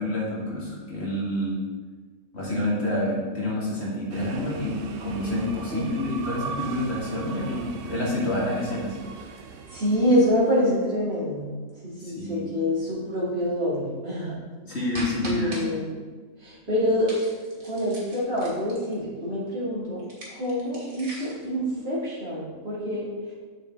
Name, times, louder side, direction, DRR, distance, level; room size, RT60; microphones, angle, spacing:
voice 1, 0.0-1.5 2.3-9.3 12.0-12.5 14.6-15.6, left 1 dB, 50° left, -5 dB, 2.3 m, -28 dB
sound 1, 4.1-10.7, right 6 dB, 65° right, 0.5 m, -39 dB
voice 2, 9.7-11.4 11.8-14.3 15.2-15.9 16.4-17.1 17.6-20.0 20.3-23.1, equal, 45° right, -8 dB, 2.8 m, -26 dB
sound 2, 14.9-15.6 17.0-18.9 20.0-21.5, right 2 dB, 85° right, 2.2 m, -39 dB
7.2 x 6.3 x 3.8 m, 1.4 s
omnidirectional pair, 1.5 m